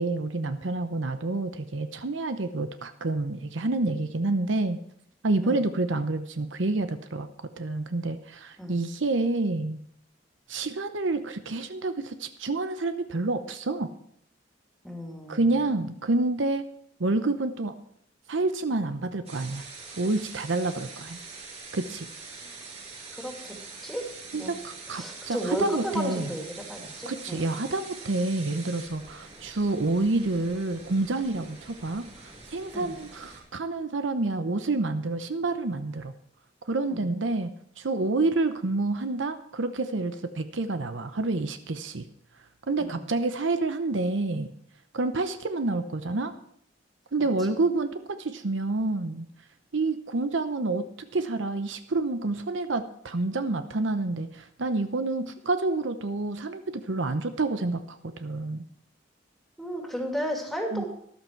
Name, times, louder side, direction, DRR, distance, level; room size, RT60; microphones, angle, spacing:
voice 1, 0.0-4.8 5.2-9.8 10.5-13.9 15.3-16.6 17.0-17.8 18.3-19.7 20.0-21.2 21.7-22.1 24.3-26.3 27.1-36.1 36.7-42.1 42.7-44.5 44.9-46.3 47.1-49.3 49.7-58.6 60.7-60.8, right 2 dB, 75° right, 9 dB, 0.8 m, -28 dB
voice 2, 14.8-15.6 22.4-22.5 23.1-23.6 23.8-24.0 24.3-24.5 24.9-27.6 32.7-32.9 36.9-37.1 42.8-43.0 59.6-60.9, equal, ahead, 1 dB, 2.6 m, -34 dB
sound 1, 19.3-33.4, right 4 dB, 35° right, 4.7 m, -44 dB
13.5 x 11.5 x 4.6 m, 0.69 s
head